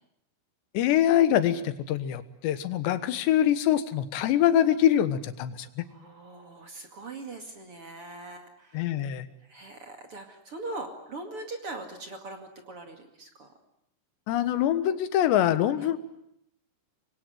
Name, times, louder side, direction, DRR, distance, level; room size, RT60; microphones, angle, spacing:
voice 1, 0.8-5.8 8.7-9.3 14.3-16.0, left 11 dB, 85° left, 12 dB, 3.5 m, -24 dB
voice 2, 5.9-8.9 9.4-13.5 15.8-15.9, right 2 dB, 40° right, 5 dB, 2.5 m, -41 dB
25.5 x 22.5 x 9.2 m, 0.77 s
omnidirectional pair, 4.9 m